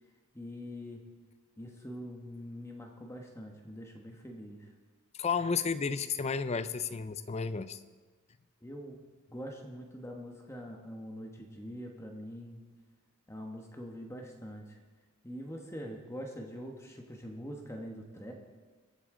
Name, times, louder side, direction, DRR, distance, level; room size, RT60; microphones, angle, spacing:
voice 1, 0.3-1.0 1.6-4.7 8.6-9.0 9.3-12.6 13.3-14.8 15.2-18.3, equal, 10° left, 1 dB, 1.1 m, -44 dB
voice 2, 5.2-7.8, left 5 dB, 30° left, 13 dB, 0.4 m, -32 dB
23.5 x 8.3 x 3.8 m, 1.4 s
head